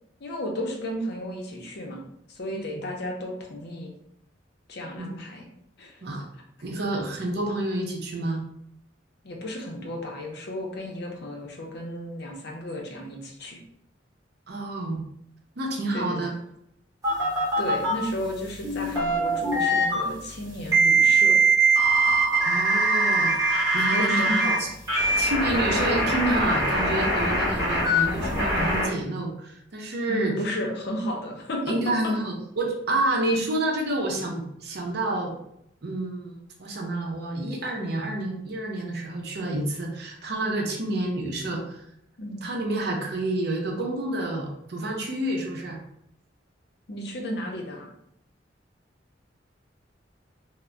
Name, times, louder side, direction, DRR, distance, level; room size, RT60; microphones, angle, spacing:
voice 1, 0.2-2.0 2.3-3.9 4.7-5.5 5.8-6.0 9.2-13.6 15.9-16.2 17.6-21.4 23.9-24.7 30.1-31.7 42.2-42.4 46.9-47.9, left 1 dB, 60° left, 0 dB, 0.6 m, -33 dB
voice 2, 6.6-8.4 14.5-15.0 15.6-16.3 22.4-24.7 25.2-30.3 31.7-35.4 35.8-36.3 36.6-41.8 42.4-45.8, right 1 dB, 60° right, 1 dB, 0.6 m, -29 dB
sound 1, 17.0-17.9 18.6-20.0 20.7-24.6 24.9-28.9, right 2 dB, 20° right, 0.9 m, -22 dB
2.2 x 2.1 x 3.6 m, 0.75 s
head